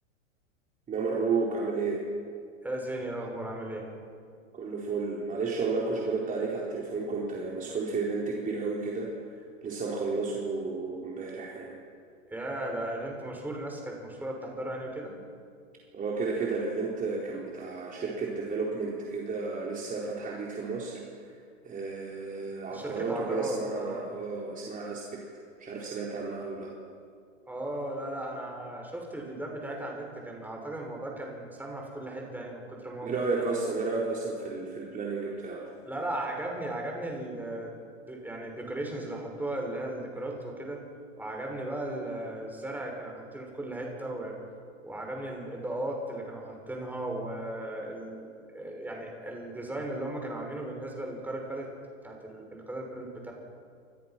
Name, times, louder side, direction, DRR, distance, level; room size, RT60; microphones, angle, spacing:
voice 1, 0.9-2.0 4.5-11.8 15.9-21.0 21.6-25.2 25.6-26.7 33.0-35.6, right 4 dB, 20° right, -3 dB, 4.4 m, -32 dB
voice 2, 2.6-3.9 12.3-15.1 22.7-24.1 27.5-33.3 35.8-37.8 38.1-40.8 41.2-44.4 44.8-51.7 52.0-53.3, right 1 dB, 5° right, 0 dB, 6.2 m, -36 dB
29.5 x 24.5 x 6.1 m, 2.3 s
hypercardioid pair, 120°, 39 cm